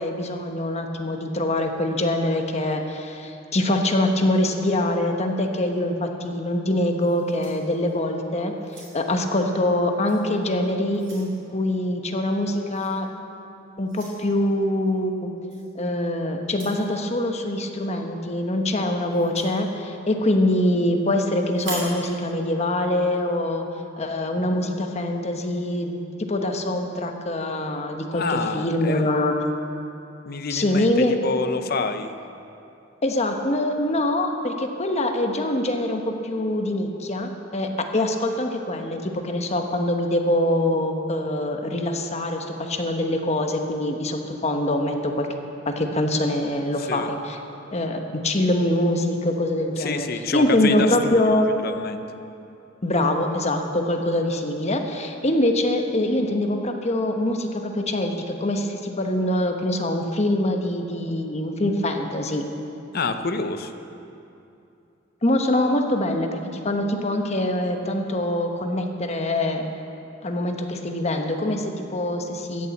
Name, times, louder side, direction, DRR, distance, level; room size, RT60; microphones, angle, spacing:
voice 1, 0.0-8.5 8.9-13.1 13.8-15.3 15.7-23.7 24.0-26.0 26.3-29.4 30.5-31.2 33.0-45.3 45.6-47.4 47.7-50.1 50.3-51.5 52.8-62.4 65.2-69.7 70.2-72.7, left 1 dB, 35° left, 4 dB, 1.0 m, -24 dB
sound 1, 7.0-8.1 8.6-9.2 10.0-10.2 10.6-11.3 12.7-13.0 13.9-14.2 15.5-15.7 16.4-16.9 19.1-19.5 21.5-22.0, right 2 dB, 85° right, 4.0 m, -39 dB
voice 2, 28.1-29.1 30.2-32.2 46.8-47.1 49.8-51.2 51.6-52.0 62.9-63.7, left 4 dB, 55° left, 9 dB, 0.7 m, -28 dB
14.5 x 7.0 x 8.6 m, 2.7 s
head